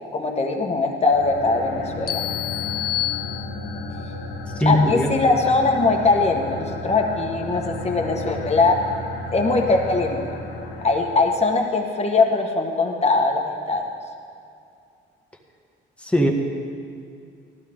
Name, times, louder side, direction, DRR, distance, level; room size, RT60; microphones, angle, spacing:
voice 1, 0.1-2.2 4.6-8.8 9.3-10.4 10.8-13.9, left 3 dB, 30° left, 2 dB, 1.6 m, -21 dB
sound 1, 1.0-11.5, left 2 dB, 90° left, 1.6 m, -33 dB
sound 2, 2.1-3.9, left 14 dB, 50° left, 0.6 m, -28 dB
voice 2, 4.6-5.1 16.0-16.3, equal, 5° left, 1 dB, 1.8 m, -19 dB
15.5 x 12.5 x 3.8 m, 2.5 s
cardioid pair, 90°, 20 cm